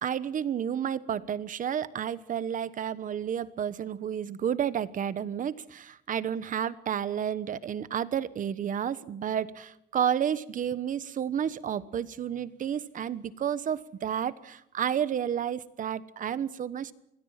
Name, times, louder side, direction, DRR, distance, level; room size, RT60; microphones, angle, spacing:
voice 1, 0.0-16.9, right 9 dB, 45° right, 16 dB, 1.1 m, -31 dB
26.0 x 21.0 x 5.8 m, 0.82 s
cardioid pair, 155°, 19 cm